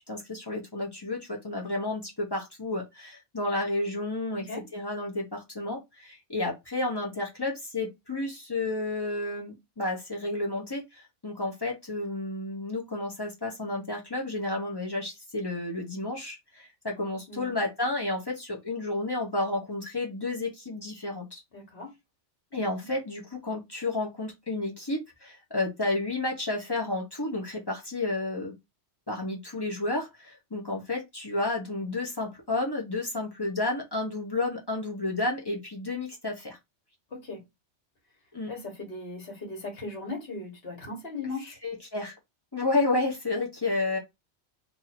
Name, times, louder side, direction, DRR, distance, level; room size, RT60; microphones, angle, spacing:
voice 1, 0.1-21.4 22.5-28.5 29.1-36.6 38.3-38.5 41.6-42.1 42.5-44.0, left 2 dB, 25° left, 0.8 m, -31 dB
voice 2, 4.3-4.7 17.3-17.5 21.5-21.9 37.1-37.4 38.5-41.6, left 3 dB, 60° left, 1.5 m, -38 dB
2.8 x 2.6 x 4.1 m
omnidirectional pair, 1.2 m